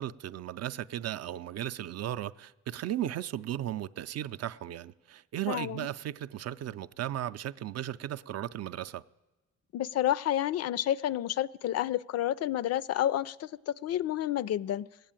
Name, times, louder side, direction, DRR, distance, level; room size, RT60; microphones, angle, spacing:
voice 1, 0.0-9.0, right 12 dB, 55° right, 0.5 m, -36 dB
voice 2, 5.5-5.9 9.7-14.9, left 12 dB, 55° left, 0.4 m, -30 dB
18.5 x 8.4 x 8.8 m
cardioid pair, 90°, 30 cm